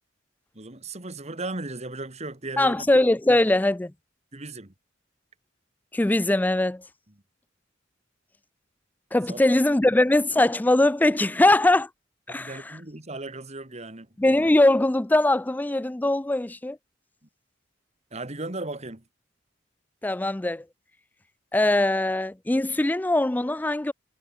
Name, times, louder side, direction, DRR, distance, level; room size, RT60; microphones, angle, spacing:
voice 1, 0.6-2.8 4.3-4.7 9.3-9.4 12.3-14.1 18.1-19.0, right 2 dB, 35° right, 2.3 m, -36 dB
voice 2, 2.6-3.9 5.9-6.8 9.1-11.9 12.3-12.8 14.2-16.8 20.0-20.6 21.5-23.9, left 1 dB, 10° left, 0.4 m, -21 dB
head